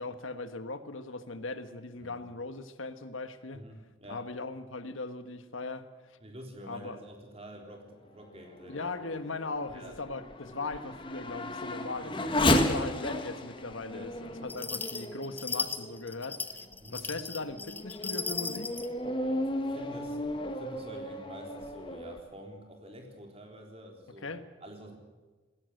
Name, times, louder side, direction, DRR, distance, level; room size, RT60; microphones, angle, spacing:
voice 1, 0.0-3.7 4.1-6.2 6.7-7.0 8.7-16.7 16.9-18.7 24.2-24.4, left 3 dB, 85° left, 10 dB, 1.4 m, -39 dB
voice 2, 3.5-4.3 6.2-8.9 9.7-10.0 13.9-14.1 16.8-17.1 19.2-24.3 24.6-25.0, equal, 30° right, 3 dB, 3.9 m, -48 dB
Race car auto racing / Accelerating revving vroom, 8.2-16.1 16.7-16.8 17.4-22.2, left 1 dB, 25° left, 1.7 m, -34 dB
sound 1, 14.5-18.9, left 4 dB, 10° left, 1.0 m, -36 dB
20.0 x 16.5 x 7.9 m, 1.3 s
head